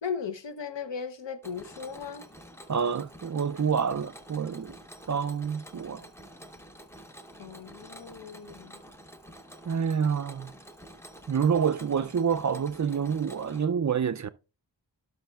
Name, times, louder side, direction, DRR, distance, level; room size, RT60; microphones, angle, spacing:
voice 1, 0.0-2.3 7.4-8.8, left 6 dB, 80° left, 0.9 m, -37 dB
Mechanisms, 1.4-13.6, equal, 5° left, 0.8 m, -49 dB
voice 2, 2.7-4.8 5.1-6.1 9.7-10.5 11.3-14.3, right 7 dB, 45° right, 0.4 m, -27 dB
16.5 x 6.3 x 2.3 m
wide cardioid pair, 80°, 43 cm